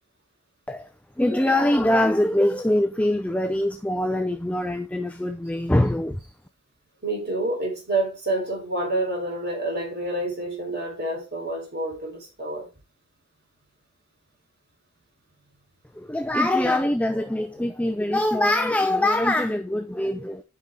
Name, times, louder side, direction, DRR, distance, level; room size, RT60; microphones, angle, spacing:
voice 1, 1.2-6.2 16.0-20.4, left 1 dB, 5° left, 0.3 m, -23 dB
voice 2, 7.0-12.7, right 2 dB, 45° right, 3.7 m, -28 dB
8.4 x 5.3 x 3.5 m
head